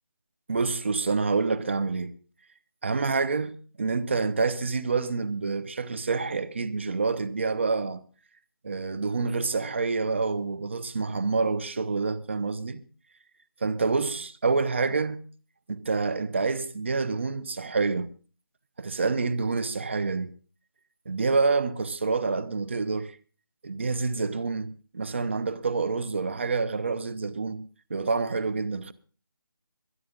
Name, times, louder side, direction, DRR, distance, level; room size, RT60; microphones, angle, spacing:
voice 1, 0.5-2.1 2.8-8.0 8.6-12.8 13.6-15.2 15.7-18.1 18.8-20.3 21.1-23.2 23.6-27.6 27.9-28.9, right 4 dB, 30° right, 0.7 m, -27 dB
22.5 x 9.9 x 3.7 m
figure-of-eight pair, 170°, 12 cm